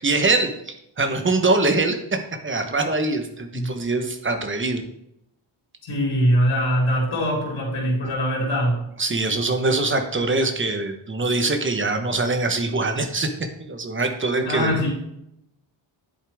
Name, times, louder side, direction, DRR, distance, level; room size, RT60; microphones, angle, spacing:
voice 1, 0.0-4.8 9.0-13.3 13.6-14.8, right 3 dB, 25° right, 6 dB, 1.1 m, -23 dB
voice 2, 5.8-8.8 14.5-14.9, equal, 75° left, -2 dB, 3.6 m, -22 dB
10.5 x 8.4 x 3.6 m, 0.80 s
wide cardioid pair, 165°, 48 cm